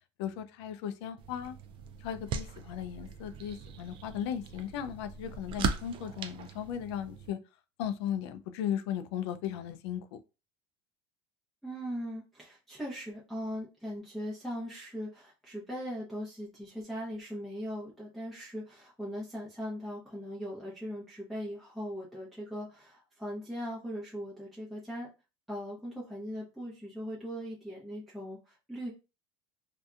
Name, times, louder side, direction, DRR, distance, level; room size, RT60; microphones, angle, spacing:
voice 1, 0.2-1.5 2.0-7.4 7.8-10.2, left 9 dB, 85° left, 0.4 m, -36 dB
sound 1, 1.2-7.3, right 5 dB, 40° right, 0.4 m, -39 dB
voice 2, 11.6-25.1 25.5-28.9, equal, ahead, 0.7 m, -39 dB
2.6 x 2.2 x 2.4 m
supercardioid pair, 140°, 13 cm